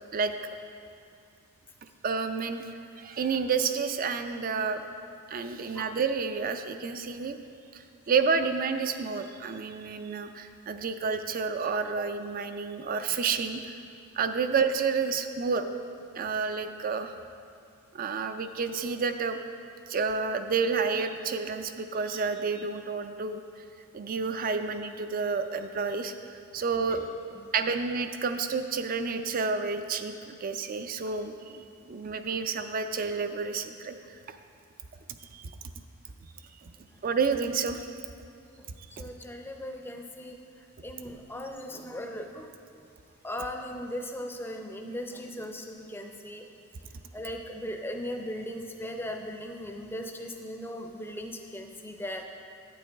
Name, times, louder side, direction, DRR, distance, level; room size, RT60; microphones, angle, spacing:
voice 1, 2.0-2.7 3.0-4.8 5.3-7.4 7.7-13.8 14.2-15.6 16.1-17.1 17.9-19.4 19.9-23.4 23.9-26.1 26.5-27.0 27.5-33.9 35.4-35.5 37.0-37.9, right 5 dB, 40° right, 8 dB, 0.4 m, -30 dB
voice 2, 26.9-27.5 38.6-40.4 40.8-42.5 43.2-46.4 47.1-52.2, equal, 10° left, 3 dB, 0.5 m, -38 dB
9.4 x 8.5 x 3.4 m, 2.4 s
head